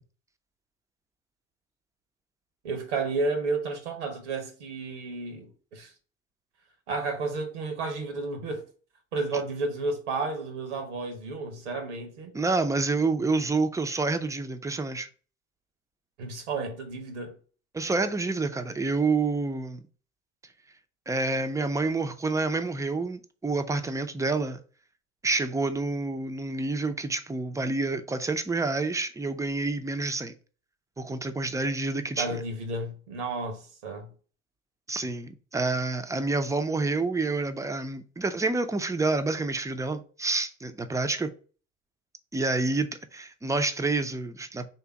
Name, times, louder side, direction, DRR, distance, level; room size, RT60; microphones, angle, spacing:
voice 1, 2.6-5.9 6.9-8.6 9.1-12.3 16.2-17.3 32.2-34.1, right 3 dB, 80° right, 1.1 m, -32 dB
voice 2, 12.3-15.1 17.7-19.8 21.1-24.6 25.2-30.3 31.0-32.4 34.9-41.3 42.3-44.7, right 3 dB, 10° right, 0.5 m, -28 dB
3.4 x 2.9 x 4.6 m
hypercardioid pair, 60°, 34 cm